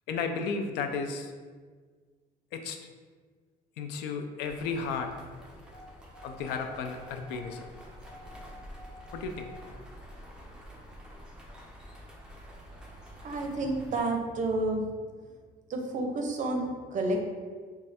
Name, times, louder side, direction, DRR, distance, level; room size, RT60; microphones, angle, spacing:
voice 1, 0.1-1.3 2.5-2.8 3.8-5.1 6.2-7.6 9.1-9.5, left 5 dB, 90° left, 6 dB, 0.4 m, -33 dB
sound 1, 4.4-14.0, equal, 5° right, 0.6 m, -48 dB
sound 2, 5.7-9.7, left 2 dB, 60° left, 1.2 m, -51 dB
voice 2, 13.2-14.9 15.7-17.3, right 2 dB, 50° right, 3 dB, 0.6 m, -30 dB
3.2 x 2.3 x 4.1 m, 1.6 s
cardioid pair, 110°, 17 cm